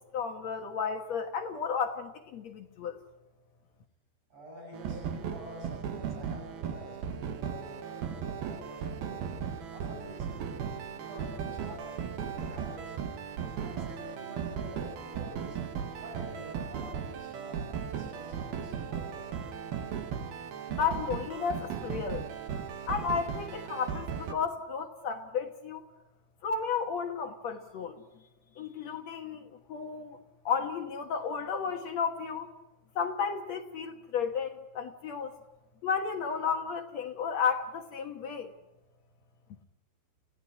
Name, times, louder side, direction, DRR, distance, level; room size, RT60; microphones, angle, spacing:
voice 1, 0.0-3.0 20.8-22.2 22.9-25.8 26.4-28.0 28.6-30.2 30.4-32.5 32.9-35.3 35.8-38.5, left 6 dB, 70° left, 5 dB, 1.7 m, -33 dB
voice 2, 4.3-9.3 9.7-12.9 13.4-15.6 16.0-19.6, equal, 35° right, -1 dB, 9.1 m, -48 dB
sound 1, 4.7-24.3, right 7 dB, 65° right, 3.5 m, -37 dB
29.5 x 16.5 x 10.0 m, 0.99 s
omnidirectional pair, 5.0 m